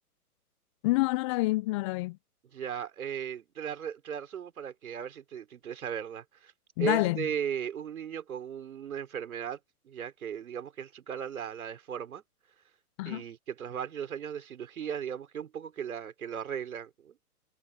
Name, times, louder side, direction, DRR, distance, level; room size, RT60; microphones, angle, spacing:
voice 1, 0.8-2.2 6.8-7.3 13.0-13.2, left 21 dB, 20° left, 0.6 m, -27 dB
voice 2, 2.5-6.5 6.8-9.6 9.8-12.2 13.0-17.2, right 8 dB, 65° right, 4.7 m, -37 dB
figure-of-eight pair, 125°, 46 cm